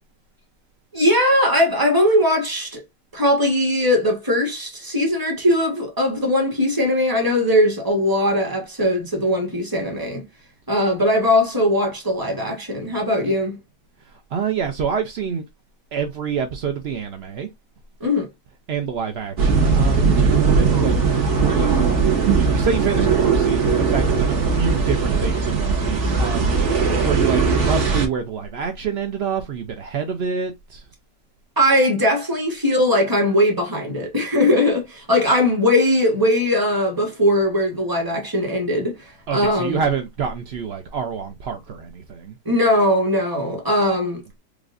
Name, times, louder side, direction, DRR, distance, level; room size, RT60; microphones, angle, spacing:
voice 1, 0.9-2.8 3.1-10.2 10.7-13.6 18.0-18.3 31.6-39.8 42.4-44.4, left 1 dB, 15° right, 1.0 m, -20 dB
voice 2, 14.1-15.4 15.9-17.5 18.7-22.0 22.3-30.8 39.3-42.4, right 6 dB, 80° right, 0.5 m, -27 dB
sound 1, 19.4-28.1, right 5 dB, 50° right, 1.3 m, -19 dB
4.9 x 2.5 x 2.4 m
omnidirectional pair, 1.8 m